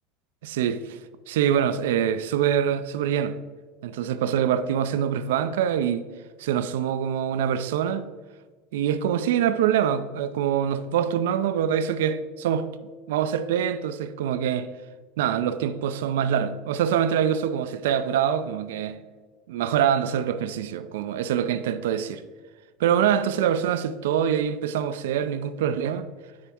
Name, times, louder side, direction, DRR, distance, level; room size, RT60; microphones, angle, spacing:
voice 1, 0.4-1.0 1.3-3.4 3.8-6.1 6.4-8.0 8.7-12.7 13.1-14.7 15.2-19.0 19.5-22.2 22.8-26.1, right 9 dB, 70° right, 0.3 m, -24 dB
9.7 x 3.4 x 2.9 m
hypercardioid pair, 80°, 0 cm